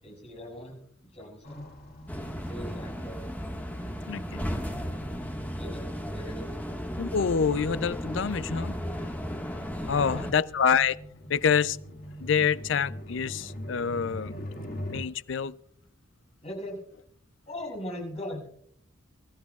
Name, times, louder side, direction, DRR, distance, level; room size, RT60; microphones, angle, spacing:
voice 1, 0.0-0.8 1.1-1.7 2.3-3.3 5.5-6.5 9.8-10.4 16.4-16.8 17.5-18.5, left 1 dB, 30° left, 6.5 m, -40 dB
sound 1, 1.4-15.0, equal, 50° left, 2.4 m, -44 dB
sound 2, 2.1-10.3, equal, 10° left, 1.6 m, -35 dB
voice 2, 4.1-4.4 7.0-8.7 9.9-11.0 11.3-11.8 12.2-14.3 14.9-15.6, left 6 dB, 65° left, 0.5 m, -26 dB
26.0 x 13.5 x 2.4 m
head